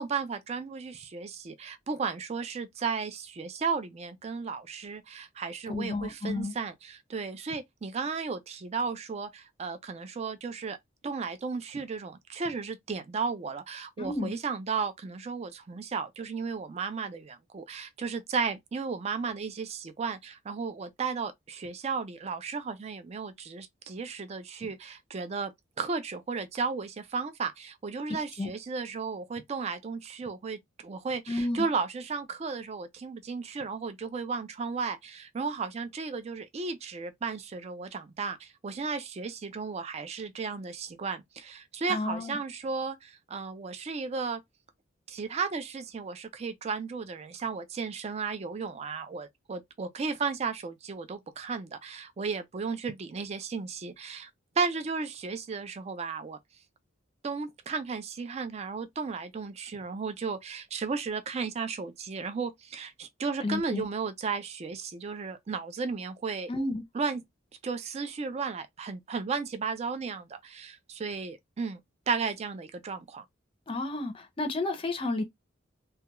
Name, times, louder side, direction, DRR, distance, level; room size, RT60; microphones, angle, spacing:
voice 1, 0.0-10.8 11.0-44.4 45.1-54.3 54.6-56.4 57.2-66.5 66.9-67.2 67.6-71.8 72.1-73.2, right 5 dB, 30° right, 0.3 m, -34 dB
voice 2, 5.7-6.5 14.0-14.3 28.4-28.5 31.3-31.7 41.9-42.4 63.4-63.9 66.5-66.8 73.7-75.2, left 2 dB, 25° left, 0.5 m, -31 dB
2.2 x 2.2 x 2.9 m
head